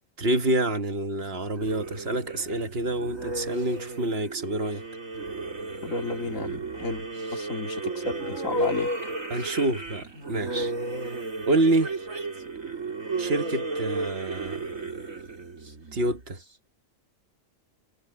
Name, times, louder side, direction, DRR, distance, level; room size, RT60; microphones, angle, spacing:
voice 1, 0.2-4.8 9.3-10.7 11.5-12.0 13.2-14.7 15.9-16.4, right 1 dB, 50° right, 1.6 m, -27 dB
sound 1, 1.5-16.4, right 2 dB, 80° right, 4.0 m, -33 dB
voice 2, 5.8-7.0 7.3-8.9, left 3 dB, 75° left, 2.9 m, -32 dB
omnidirectional pair, 1.4 m